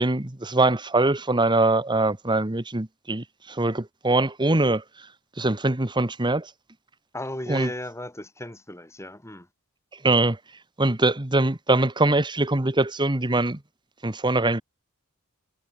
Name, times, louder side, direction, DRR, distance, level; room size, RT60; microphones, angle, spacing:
voice 1, 0.0-4.8 5.4-6.5 7.5-7.7 10.0-10.4 10.8-13.6 14.0-14.6, right 2 dB, 20° right, 1.4 m, -23 dB
voice 2, 7.1-9.5, left 1 dB, 15° left, 5.7 m, -35 dB
head